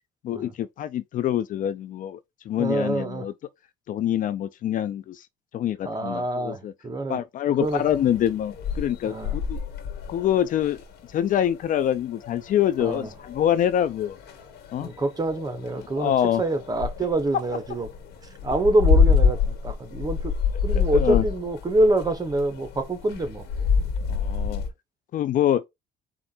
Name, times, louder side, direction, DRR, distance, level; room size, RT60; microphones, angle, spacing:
voice 1, 0.2-2.2 2.5-3.3 3.9-5.3 5.5-6.7 7.1-9.6 10.1-10.8 11.1-14.2 14.7-14.9 15.8-16.4 20.7-21.2 24.0-24.6 25.1-25.6, left 10 dB, 50° left, 0.4 m, -25 dB
voice 2, 2.6-3.3 5.8-7.2 7.6-7.8 9.0-9.4 12.8-13.1 14.8-16.1 16.4-17.9 18.4-20.3 20.6-23.5 23.8-23.9, right 2 dB, 20° right, 1.1 m, -26 dB
sound 1, 7.6-24.7, left 5 dB, 70° left, 1.4 m, -27 dB
4.4 x 2.5 x 4.2 m
cardioid pair, 110°, 17 cm